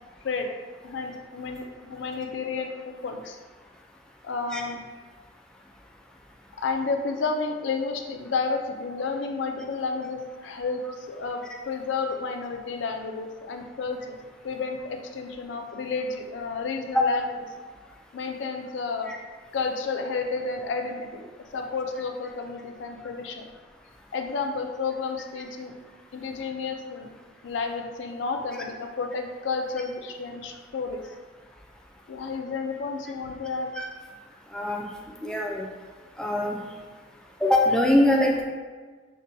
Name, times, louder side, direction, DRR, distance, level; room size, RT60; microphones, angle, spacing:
voice 1, 0.2-0.6 0.8-3.4 4.2-4.8 6.6-14.2 14.4-17.3 18.1-19.1 19.5-23.5 24.1-25.7 26.1-27.1 27.4-31.0 32.1-33.7, left 4 dB, 70° left, 4 dB, 0.4 m, -31 dB
voice 2, 34.5-34.9 35.2-35.6 36.2-36.6 37.4-38.4, left 1 dB, 5° left, -2 dB, 0.4 m, -22 dB
5.3 x 2.2 x 2.6 m, 1.5 s
head